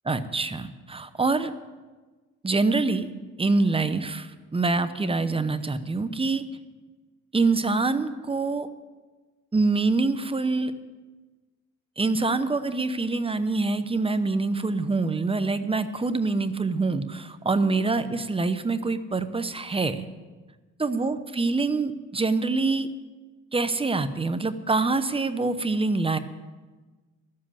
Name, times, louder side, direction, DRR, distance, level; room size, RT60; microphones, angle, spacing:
voice 1, 0.0-1.5 2.4-3.1 3.4-6.4 7.3-8.7 9.5-10.7 12.0-20.1 20.8-22.9 23.5-26.2, right 3 dB, 20° right, 11 dB, 0.8 m, -25 dB
12.5 x 7.7 x 8.8 m, 1.3 s
cardioid pair, 90°, 30 cm